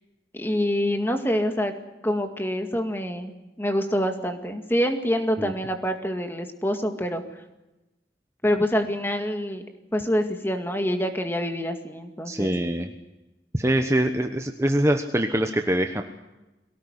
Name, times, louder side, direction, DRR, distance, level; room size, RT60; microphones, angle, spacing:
voice 1, 0.3-1.7 2.0-3.3 3.6-7.2 8.4-9.6 9.9-12.5, equal, 10° left, 6 dB, 2.1 m, -26 dB
voice 2, 12.2-12.9 13.5-16.0, right 1 dB, 15° right, 5 dB, 1.1 m, -24 dB
22.5 x 18.0 x 10.0 m, 1.0 s
head